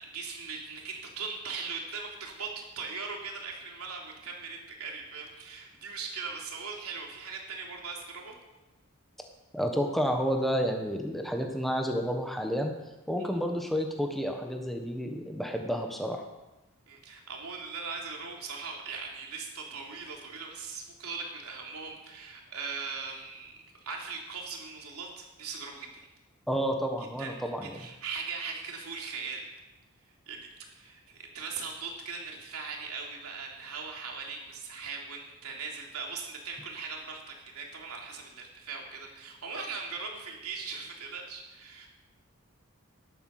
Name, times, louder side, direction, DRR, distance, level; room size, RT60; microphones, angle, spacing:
voice 1, 0.0-8.4 16.9-26.0 27.2-27.4 27.6-29.4 30.3-41.9, right 5 dB, 90° right, 0 dB, 3.3 m, -40 dB
voice 2, 9.5-12.7 13.1-16.2 26.5-27.8, equal, ahead, 3 dB, 1.3 m, -30 dB
12.5 x 11.5 x 6.7 m, 1.0 s
head